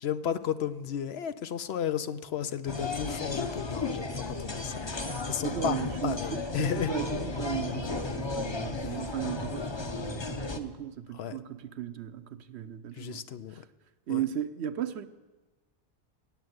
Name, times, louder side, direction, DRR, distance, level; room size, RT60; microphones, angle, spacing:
voice 1, 0.0-5.8 6.0-6.9 8.7-8.9 11.1-11.4 12.9-13.6 14.1-14.2, left 9 dB, 80° left, 1.0 m, -33 dB
sound 1, 2.7-10.6, left 3 dB, 30° left, 0.8 m, -34 dB
voice 2, 5.4-13.6 14.1-15.1, right 10 dB, 85° right, 1.0 m, -36 dB
17.5 x 7.6 x 9.5 m
omnidirectional pair, 1.1 m